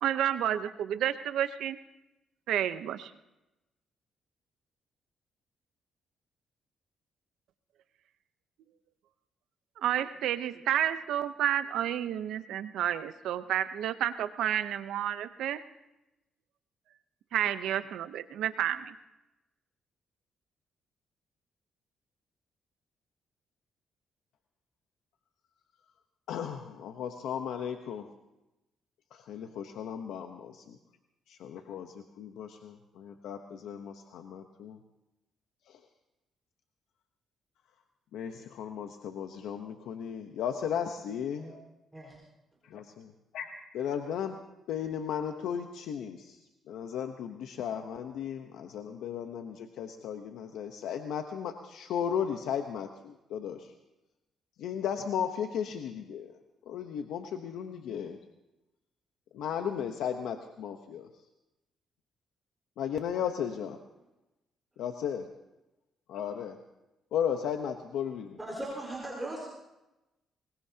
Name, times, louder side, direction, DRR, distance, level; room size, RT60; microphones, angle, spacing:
voice 1, 0.0-1.8 2.5-3.1 9.8-15.6 17.3-18.9, right 11 dB, 80° right, 11 dB, 0.8 m, -30 dB
voice 2, 26.3-28.1 29.1-30.8 31.3-34.8 35.7-35.8 38.1-41.5 42.6-44.4 44.7-46.4 46.7-53.7 54.6-56.3 56.7-58.2 59.3-61.1 62.8-63.8 64.8-65.3 66.1-66.6 67.1-68.4, left 8 dB, 80° left, 6 dB, 0.9 m, -35 dB
voice 3, 68.4-69.5, right 1 dB, 10° right, -3 dB, 4.7 m, -38 dB
22.0 x 21.5 x 2.9 m, 0.97 s
cardioid pair, 90°, 0 cm